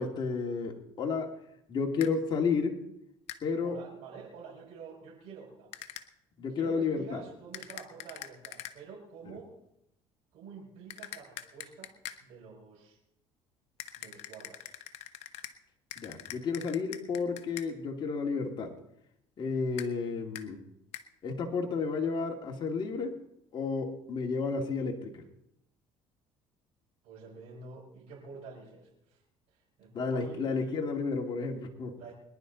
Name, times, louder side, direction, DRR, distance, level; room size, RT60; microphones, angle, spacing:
voice 1, 0.0-1.3 1.7-2.8 3.4-3.8 6.4-7.2 16.0-18.7 19.4-20.6 21.2-23.2 23.5-25.2 29.9-32.0, left 4 dB, 45° left, 1 dB, 2.4 m, -32 dB
sound 1, 2.0-2.1 3.3-3.4 5.7-6.1 7.5-8.8 10.9-12.2 13.8-15.6 15.9-17.7 19.8-19.9 20.4-20.5 20.9-21.1, left 12 dB, 70° left, 1.1 m, -43 dB
voice 2, 3.5-5.7 6.5-9.5 10.3-11.9 12.2-13.0 14.0-14.7 27.0-29.2 29.5-30.7 32.0-32.1, right 5 dB, 70° right, -5 dB, 5.4 m, -48 dB
23.0 x 11.0 x 4.0 m, 0.80 s
cardioid pair, 105°, 11 cm